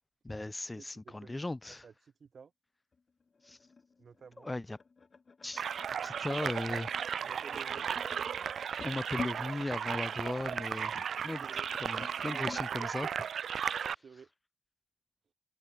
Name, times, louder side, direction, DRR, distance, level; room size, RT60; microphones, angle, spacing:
voice 1, 0.2-1.9 3.4-3.6 4.4-4.8 5.4-5.6 6.0-6.9 8.8-13.1, left 2 dB, 15° left, 1.9 m, -38 dB
voice 2, 0.8-1.4 1.8-2.5 4.0-4.5 6.2-6.5 7.2-7.9 11.4-11.7 12.2-12.8 14.0-14.3, right 6 dB, 45° right, 6.9 m, -52 dB
sound 1, 2.9-12.7, left 4 dB, 35° left, 7.8 m, -49 dB
sound 2, 5.6-14.0, right 7 dB, 70° right, 1.4 m, -35 dB
open air
wide cardioid pair, 180°, 0 cm